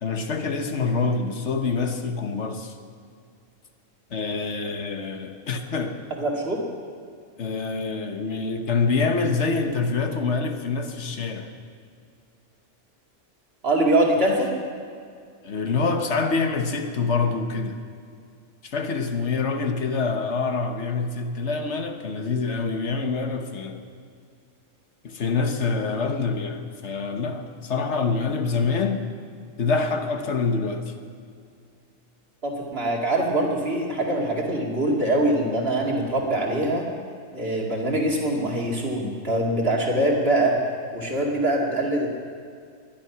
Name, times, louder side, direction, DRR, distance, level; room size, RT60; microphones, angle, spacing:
voice 1, 0.0-2.7 4.1-6.0 7.4-11.5 15.4-17.8 18.6-23.8 25.0-29.0 29.6-30.9, left 4 dB, 60° left, 6 dB, 1.4 m, -26 dB
voice 2, 6.2-6.6 13.6-14.5 25.7-25.8 32.4-36.8 37.3-40.5 40.9-42.1, right 1 dB, 50° right, -2 dB, 2.7 m, -23 dB
20.5 x 11.5 x 6.0 m, 2.3 s
omnidirectional pair, 1.3 m